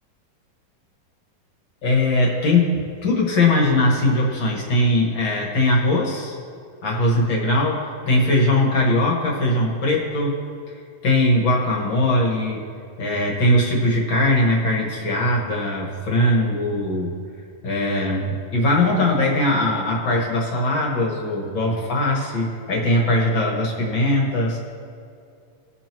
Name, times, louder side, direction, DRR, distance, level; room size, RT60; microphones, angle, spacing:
voice 1, 1.8-6.4 6.8-10.4 10.7-10.8 11.0-12.6 13.0-17.1 17.6-24.6, left 1 dB, 45° left, -2 dB, 1.7 m, -20 dB
20.0 x 6.8 x 3.0 m, 2.4 s
omnidirectional pair, 3.9 m